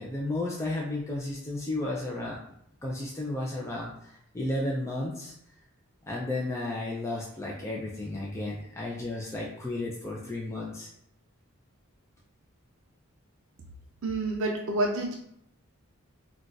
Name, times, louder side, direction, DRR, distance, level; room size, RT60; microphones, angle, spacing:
voice 1, 0.0-2.4 2.8-5.3 6.1-10.9, left 2 dB, 15° left, -4 dB, 0.4 m, -33 dB
voice 2, 14.0-15.1, right 2 dB, 65° right, 1 dB, 0.4 m, -28 dB
2.4 x 2.2 x 3.8 m, 0.72 s
head